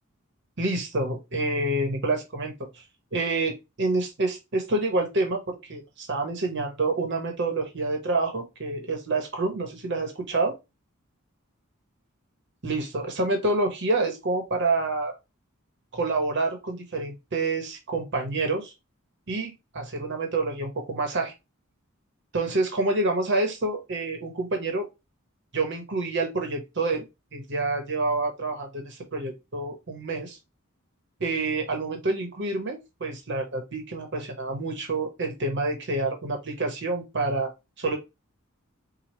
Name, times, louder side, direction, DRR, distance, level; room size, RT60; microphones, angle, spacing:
voice 1, 0.6-2.5 3.1-10.6 12.6-15.1 15.9-18.7 19.3-21.3 22.3-24.9 25.5-27.0 27.3-30.4 31.2-37.5 37.8-38.0, right 2 dB, 60° right, 4 dB, 1.1 m, -28 dB
4.8 x 2.3 x 3.1 m, 0.24 s
head